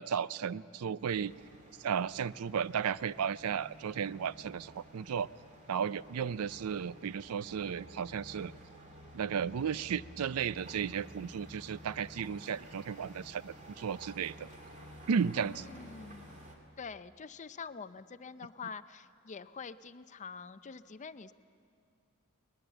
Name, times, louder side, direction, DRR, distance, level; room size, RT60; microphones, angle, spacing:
voice 1, 0.0-1.3 1.8-5.3 5.7-8.5 9.1-14.5 15.1-15.7, right 7 dB, 80° right, 18 dB, 0.4 m, -34 dB
sound 1, 1.0-16.6, equal, 35° right, 2.5 m, -53 dB
voice 2, 15.5-16.4 16.8-21.3, left 5 dB, 35° left, 13 dB, 0.5 m, -46 dB
21.0 x 20.0 x 7.9 m, 2.4 s
head